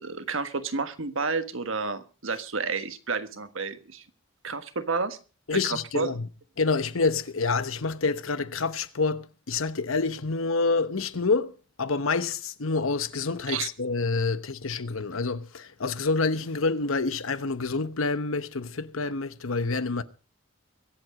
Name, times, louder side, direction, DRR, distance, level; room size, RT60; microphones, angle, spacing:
voice 1, 0.0-4.0 4.4-5.2 5.5-6.1 13.5-13.7, right 4 dB, 70° right, 1.4 m, -30 dB
voice 2, 5.5-6.3 6.6-11.5 11.8-20.0, left 4 dB, 75° left, 1.0 m, -27 dB
24.0 x 8.1 x 4.9 m
head